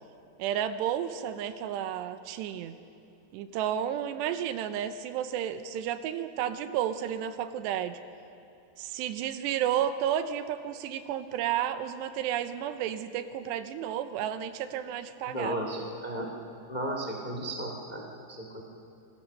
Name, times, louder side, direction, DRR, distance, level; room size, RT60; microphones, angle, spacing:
voice 1, 0.4-2.8 3.3-8.0 8.8-15.6, right 10 dB, 80° right, 11 dB, 2.9 m, -32 dB
voice 2, 15.3-16.3 16.7-18.6, right 1 dB, 90° left, 1 dB, 0.4 m, -34 dB
27.0 x 20.0 x 6.6 m, 2.6 s
omnidirectional pair, 5.1 m